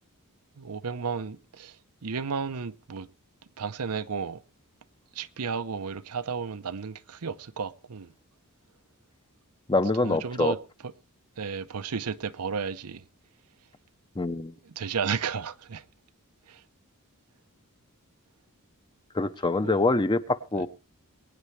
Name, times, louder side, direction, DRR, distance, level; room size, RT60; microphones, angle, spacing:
voice 1, 0.6-1.7 2.0-3.1 3.6-4.4 5.2-8.1 10.0-10.6 11.4-13.0 14.7-15.8 16.5-16.6 19.6-19.8, right 5 dB, 85° right, 0.7 m, -33 dB
voice 2, 9.7-10.6 14.2-14.5 19.1-20.7, left 2 dB, 20° left, 0.7 m, -25 dB
23.0 x 9.4 x 3.2 m
head